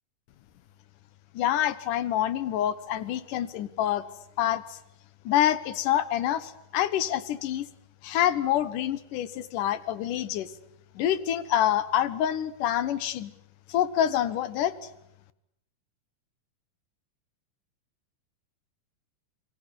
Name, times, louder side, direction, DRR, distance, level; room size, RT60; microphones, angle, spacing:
voice 1, 1.3-4.1 4.4-4.8 5.3-7.7 8.0-10.5 11.0-13.3 13.7-14.7, left 11 dB, 75° left, 16 dB, 2.7 m, -26 dB
28.0 x 23.0 x 8.4 m, 0.77 s
omnidirectional pair, 3.8 m